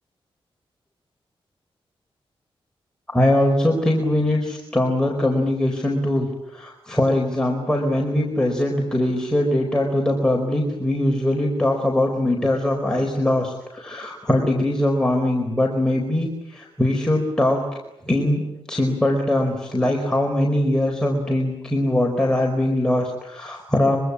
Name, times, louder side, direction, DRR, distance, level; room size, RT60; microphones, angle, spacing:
voice 1, 3.1-17.6 18.1-24.0, left 1 dB, 5° left, 0 dB, 4.7 m, -21 dB
25.5 x 25.0 x 8.7 m, 0.87 s
wide cardioid pair, 130°, 10 cm